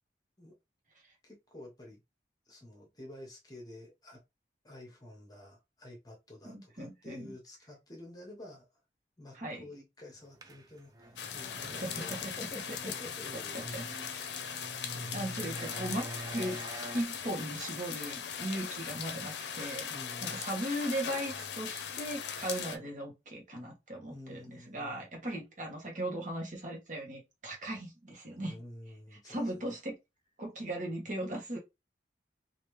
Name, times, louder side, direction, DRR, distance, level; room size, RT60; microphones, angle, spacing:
voice 1, 1.2-2.0 2.5-4.2 4.6-8.6 9.2-13.9 14.4-15.3 19.9-20.4 24.1-25.1 28.4-29.8, left 1 dB, 20° left, 1.0 m, -50 dB
voice 2, 6.4-7.3 9.3-9.6 11.8-12.2 13.5-14.3 15.1-16.6 16.9-19.9 20.2-28.5 29.3-30.0 30.4-31.6, right 1 dB, 45° right, 1.2 m, -38 dB
sound 1, 10.4-17.0, right 1 dB, 20° right, 0.4 m, -46 dB
sound 2, 11.2-22.8, left 7 dB, 75° left, 0.5 m, -39 dB
3.1 x 2.6 x 3.1 m
head